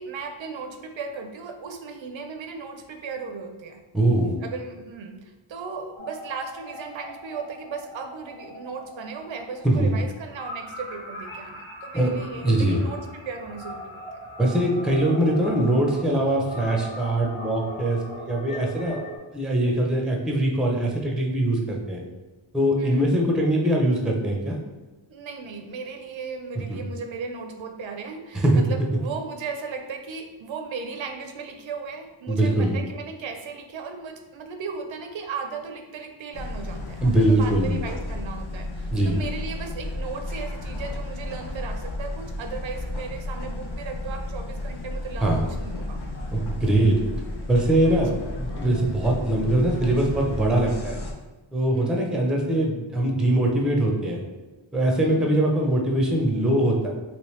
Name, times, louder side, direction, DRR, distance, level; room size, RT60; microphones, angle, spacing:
voice 1, 0.0-3.8 4.4-14.2 22.8-23.1 25.1-46.0 47.8-48.0 51.7-52.1 55.0-55.4, right 5 dB, 70° right, 5 dB, 0.5 m, -36 dB
voice 2, 3.9-4.4 9.6-9.9 11.9-12.1 12.4-12.8 14.4-19.0 19.3-22.0 22.5-24.6 26.7-26.8 28.3-28.6 32.3-32.8 37.0-37.8 38.9-39.2 45.2-45.4 46.3-47.0 47.5-51.0 51.5-54.2 54.7-56.9, right 1 dB, ahead, 0 dB, 0.4 m, -22 dB
sound 1, 6.0-19.2, left 1 dB, 80° left, 1.1 m, -40 dB
sound 2, 36.3-51.1, left 2 dB, 55° left, 0.6 m, -33 dB
3.1 x 3.0 x 3.0 m, 1.2 s
wide cardioid pair, 130°, 48 cm